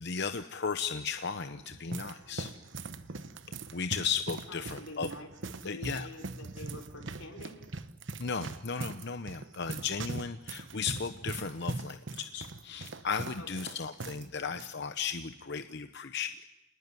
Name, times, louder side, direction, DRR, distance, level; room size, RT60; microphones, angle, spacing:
voice 1, 0.0-2.5 3.7-5.1 5.6-6.1 8.2-16.3, left 5 dB, 55° left, 9 dB, 0.9 m, -35 dB
sound 1, 1.4-14.3 14.5-14.7 15.4-15.7, right 3 dB, 60° right, 1.1 m, -41 dB
voice 2, 4.5-5.3 5.6-7.6 13.4-13.7, left 1 dB, 90° left, 3 dB, 5.2 m, -46 dB
28.0 x 20.0 x 9.8 m, 0.94 s
head